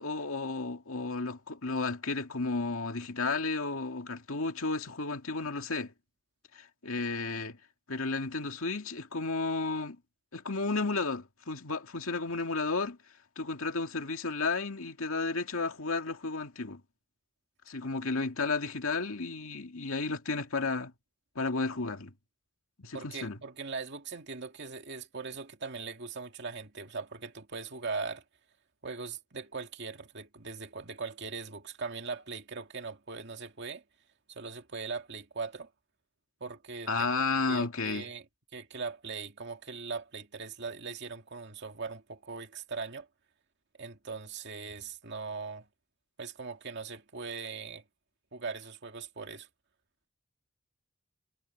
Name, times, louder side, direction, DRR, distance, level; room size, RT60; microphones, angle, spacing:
voice 1, 0.0-5.9 6.5-7.6 7.9-10.0 10.3-13.0 13.4-16.8 17.7-20.9 21.4-22.1 22.8-23.4 36.9-38.1, left 3 dB, 80° left, 2.2 m, -33 dB
voice 2, 22.9-28.2 28.8-33.8 34.3-35.7 36.4-37.1 37.5-38.3 38.5-43.1 43.8-45.7 46.2-47.8 48.3-49.5, right 4 dB, 55° right, 2.3 m, -40 dB
head